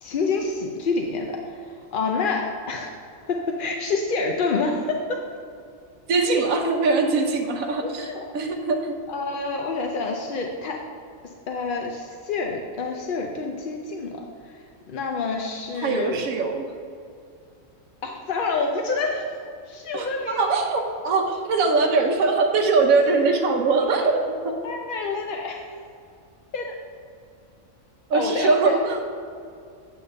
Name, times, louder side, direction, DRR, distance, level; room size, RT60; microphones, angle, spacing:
voice 1, 0.0-3.0 3.3-5.2 7.8-8.4 9.1-10.8 11.5-14.6 14.9-16.2 18.0-19.4 19.7-20.5 23.8-24.1 24.6-25.7 26.5-26.8 28.1-28.8, left 4 dB, 55° left, 2 dB, 0.6 m, -28 dB
voice 2, 6.1-8.9 15.8-16.7 19.9-24.5 28.1-29.0, right 3 dB, 85° right, 2 dB, 1.2 m, -22 dB
8.6 x 3.5 x 6.6 m, 2.4 s
omnidirectional pair, 1.4 m